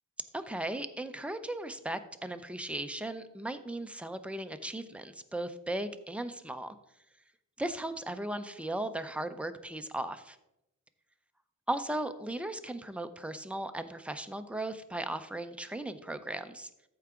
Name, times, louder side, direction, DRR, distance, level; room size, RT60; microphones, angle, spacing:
voice 1, 0.3-6.8 7.6-10.4 11.7-16.7, right 1 dB, 5° right, 9 dB, 0.6 m, -37 dB
14.0 x 4.8 x 3.7 m, 0.85 s
wide cardioid pair, 90°, 32 cm